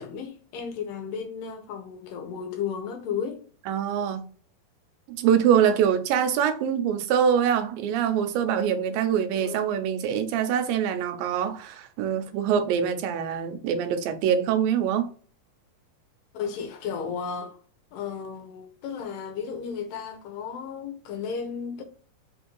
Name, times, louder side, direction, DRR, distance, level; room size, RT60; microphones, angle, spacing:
voice 1, 0.0-3.4 9.3-9.6 16.3-17.6 17.9-21.8, left 6 dB, 80° left, 2.5 m, -34 dB
voice 2, 3.7-4.2 5.1-15.1, right 8 dB, 90° right, 2.4 m, -24 dB
5.6 x 2.6 x 3.1 m
omnidirectional pair, 4.1 m